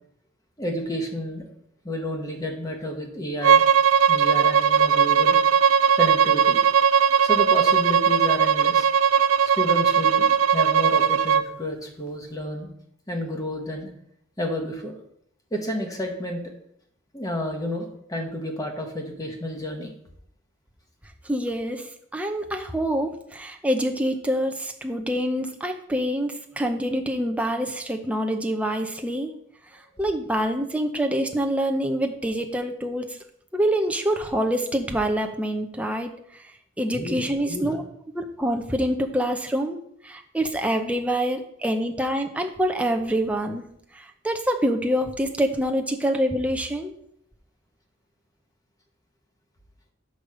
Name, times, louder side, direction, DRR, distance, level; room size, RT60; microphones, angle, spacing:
voice 1, 0.6-1.5 1.8-3.6 4.1-5.4 5.9-6.6 7.2-8.9 9.5-12.7 13.1-13.9 14.4-14.9 15.5-16.4 17.1-19.9 29.7-29.8 36.9-37.2 37.4-37.8, equal, 20° left, 2 dB, 1.3 m, -30 dB
Bowed string instrument, 3.4-11.5, right 7 dB, 80° right, 0.4 m, -19 dB
voice 2, 21.2-29.3 30.0-33.1 33.5-36.4 36.8-37.8 38.1-43.6 43.9-46.9, equal, 5° right, 4 dB, 0.7 m, -26 dB
6.4 x 5.1 x 6.3 m, 0.71 s
head